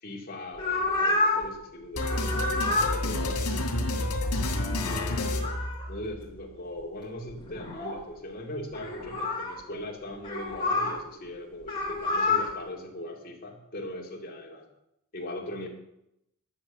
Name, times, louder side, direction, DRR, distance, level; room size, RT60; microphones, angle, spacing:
voice 1, 0.0-3.5 5.9-14.7 15.1-15.7, left 1 dB, 40° left, -1 dB, 2.4 m, -39 dB
sound 1, 0.6-1.5 1.9-3.0 5.0-5.9 6.8-6.9 7.3-8.0 8.7-9.6 10.2-11.0 11.6-12.5, left 2 dB, 25° left, 3.2 m, -28 dB
sound 2, 2.0-6.3, left 1 dB, 85° left, 2.4 m, -29 dB
11.5 x 7.2 x 7.1 m, 0.82 s
head